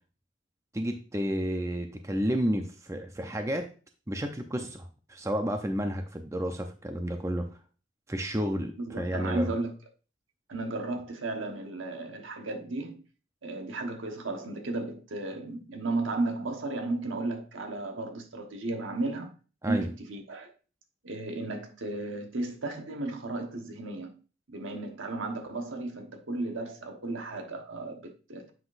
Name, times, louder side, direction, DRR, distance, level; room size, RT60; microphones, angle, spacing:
voice 1, 0.7-3.7 4.1-7.5 8.1-9.5 19.6-19.9, equal, 15° right, 0.6 m, -31 dB
voice 2, 8.8-9.7 10.5-13.0 13.4-19.3 19.7-20.5 21.0-24.2 24.5-28.5, right 2 dB, 80° right, 1.2 m, -34 dB
7.9 x 5.9 x 2.5 m
head